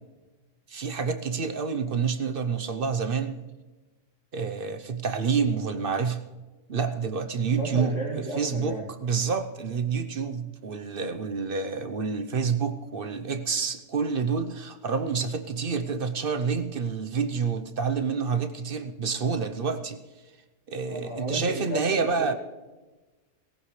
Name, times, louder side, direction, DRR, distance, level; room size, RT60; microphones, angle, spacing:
voice 1, 0.7-3.4 4.3-6.2 6.7-8.8 9.0-20.0 20.7-22.3, right 5 dB, 50° right, 9 dB, 1.0 m, -28 dB
voice 2, 7.5-8.9 20.9-22.4, right 1 dB, 75° left, -6 dB, 3.0 m, -33 dB
18.5 x 17.0 x 3.2 m, 1.2 s
omnidirectional pair, 1.3 m